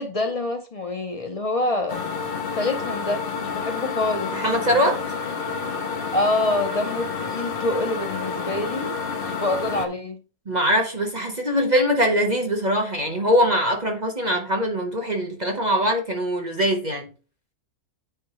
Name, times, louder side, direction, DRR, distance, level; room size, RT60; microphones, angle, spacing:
voice 1, 0.0-2.0 2.6-4.3 6.1-8.9 9.2-10.2, left 2 dB, 60° left, 0.3 m, -26 dB
sound 1, 1.9-9.9, left 5 dB, 45° left, 0.8 m, -29 dB
voice 2, 4.3-5.0 10.5-17.1, equal, 30° right, 1.1 m, -22 dB
9.2 x 4.5 x 3.1 m
omnidirectional pair, 1.6 m